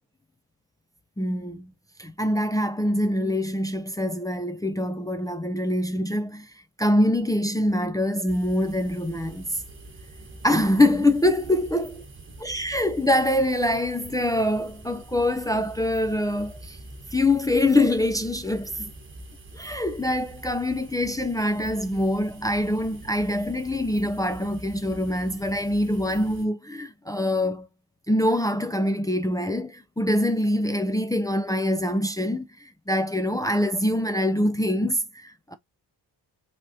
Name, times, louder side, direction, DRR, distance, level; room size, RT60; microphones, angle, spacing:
voice 1, 1.2-1.7 2.0-6.5 6.8-9.6 10.4-12.0 12.4-16.8 17.1-18.9 19.5-27.7 28.1-35.6, left 1 dB, 10° left, 0.4 m, -24 dB
sound 1, 8.3-26.5, right 2 dB, 30° right, 1.3 m, -44 dB
5.7 x 3.5 x 2.7 m
wide cardioid pair, 160°, 42 cm